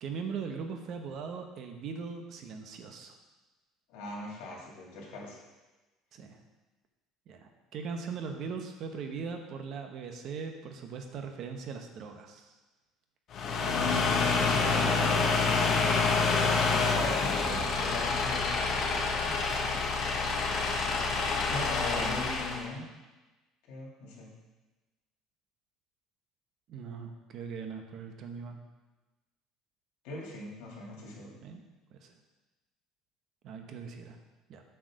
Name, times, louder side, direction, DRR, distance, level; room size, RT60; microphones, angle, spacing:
voice 1, 0.0-3.1 6.1-6.4 7.3-12.5 16.3-16.6 21.8-22.2 26.7-28.6 31.4-31.6 31.9-32.1 33.4-34.2 34.5-34.6, right 5 dB, 45° right, 5 dB, 0.9 m, -40 dB
voice 2, 3.9-5.4 13.6-15.4 17.8-19.4 21.5-22.9 23.7-24.3 30.0-31.3, left 3 dB, 75° left, -3 dB, 2.8 m, -39 dB
sound 1, 13.3-22.6, left 4 dB, 40° left, 1.1 m, -27 dB
7.7 x 4.7 x 6.3 m, 1.1 s
cardioid pair, 160°, 0 cm